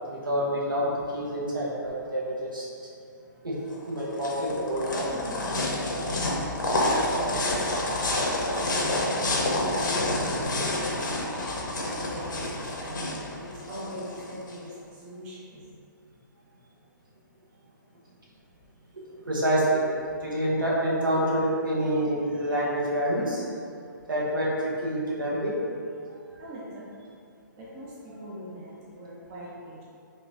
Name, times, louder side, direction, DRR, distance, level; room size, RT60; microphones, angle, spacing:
voice 1, 0.1-2.7 3.4-3.6 3.9-5.1 18.9-19.8 20.2-23.4 24.1-25.6 26.3-26.4, right 1 dB, 80° right, -6 dB, 0.9 m, -27 dB
sound 1, 3.7-14.6, left 1 dB, 70° left, 0.6 m, -28 dB
voice 2, 5.1-5.9 6.2-8.1 8.8-11.2 11.8-15.7 26.4-26.9 27.6-29.8, right 1 dB, 25° right, -6 dB, 0.5 m, -40 dB
3.6 x 2.5 x 2.4 m, 2.5 s
figure-of-eight pair, 135°, 11 cm